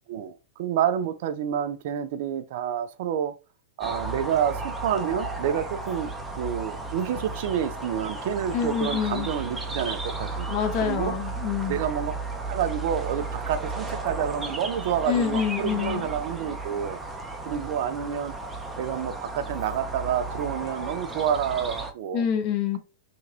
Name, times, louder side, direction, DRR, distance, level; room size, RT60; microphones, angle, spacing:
voice 1, 0.1-3.4 3.8-10.5 10.8-11.2 11.7-12.1 12.5-17.0 17.5-18.4 18.8-22.3, right 9 dB, 60° right, 0.5 m, -28 dB
sound 1, 3.8-21.9, right 3 dB, 10° right, 0.8 m, -34 dB
voice 2, 8.5-9.3 10.5-11.8 15.1-16.0 22.1-22.8, left 8 dB, 45° left, 1.0 m, -26 dB
3.4 x 2.9 x 2.7 m
hypercardioid pair, 105°, 0 cm